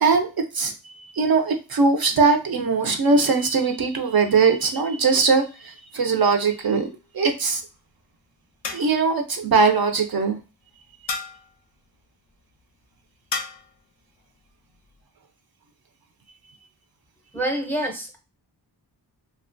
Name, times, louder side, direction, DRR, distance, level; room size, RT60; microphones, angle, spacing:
voice 1, 0.0-6.9 7.1-7.6 8.7-10.4, right 4 dB, 60° right, 5 dB, 0.5 m, -21 dB
sound 1, 6.4-7.0 8.6-9.2 11.1-11.6 13.3-13.8, left 4 dB, 90° left, 0.5 m, -33 dB
voice 2, 17.3-18.2, right 1 dB, 5° left, 3 dB, 0.6 m, -27 dB
2.8 x 2.2 x 2.5 m, 0.30 s
wide cardioid pair, 75°, 42 cm